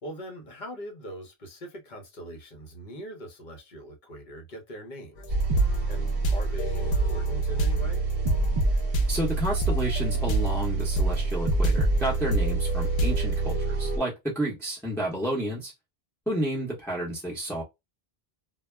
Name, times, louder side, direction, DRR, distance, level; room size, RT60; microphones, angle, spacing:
voice 1, 0.0-5.6 5.9-8.0, right 1 dB, 50° left, 0.9 m, -42 dB
sound 1, 5.2-10.6 11.0-13.3, right 2 dB, 85° left, 0.8 m, -29 dB
sound 2, 5.3-14.0, right 3 dB, 45° right, 0.5 m, -27 dB
voice 2, 9.1-15.7 16.3-17.6, right 1 dB, 5° left, 0.8 m, -31 dB
2.2 x 2.0 x 3.2 m
omnidirectional pair, 1.0 m